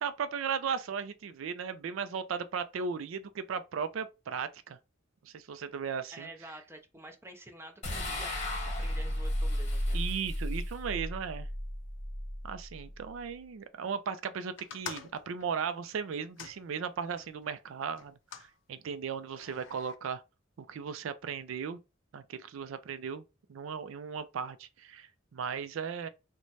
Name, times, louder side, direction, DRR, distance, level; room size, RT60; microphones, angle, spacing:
voice 1, 0.0-4.8 5.2-6.3 9.9-11.5 12.4-20.2 20.6-21.8 22.1-23.2 23.5-26.1, right 6 dB, 85° right, 0.4 m, -36 dB
voice 2, 6.1-8.3 8.6-10.0, right 1 dB, 15° right, 0.6 m, -49 dB
sound 1, 7.8-13.2, left 1 dB, 35° left, 1.2 m, -34 dB
sound 2, 14.6-17.3 18.0-18.5 19.3-20.0, left 7 dB, 65° left, 0.4 m, -47 dB
3.1 x 2.2 x 3.9 m
head